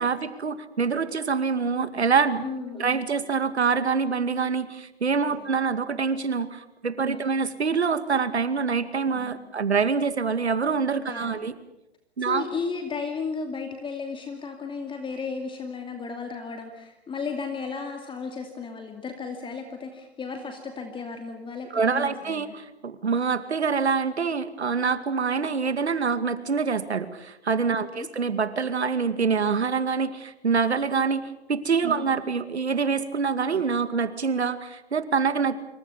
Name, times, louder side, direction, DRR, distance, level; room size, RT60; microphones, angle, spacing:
voice 1, 0.0-2.4 2.8-11.5 12.2-12.4 21.7-35.6, right 5 dB, 85° right, 11 dB, 2.3 m, -25 dB
voice 2, 2.4-3.0 5.4-5.5 7.1-7.3 9.2-9.5 11.1-11.5 12.2-22.5 27.8-28.1 31.9-32.2, left 5 dB, 15° left, 5 dB, 2.5 m, -34 dB
26.5 x 24.5 x 7.1 m, 0.90 s
hypercardioid pair, 120°, 32 cm